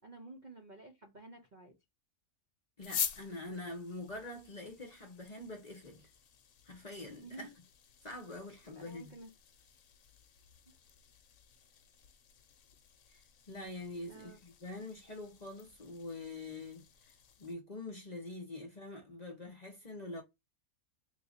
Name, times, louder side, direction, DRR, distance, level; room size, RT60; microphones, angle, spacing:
voice 1, 0.0-1.8 7.1-7.5 8.7-9.3 14.0-14.4, right 2 dB, 45° right, 0.6 m, -51 dB
sound 1, 2.8-17.5, left 7 dB, 75° left, 1.1 m, -47 dB
voice 2, 2.8-6.1 6.6-7.5 8.0-9.1 13.1-13.2 13.5-17.1 17.4-20.2, left 2 dB, 35° left, 0.8 m, -45 dB
3.4 x 2.3 x 4.0 m
omnidirectional pair, 1.5 m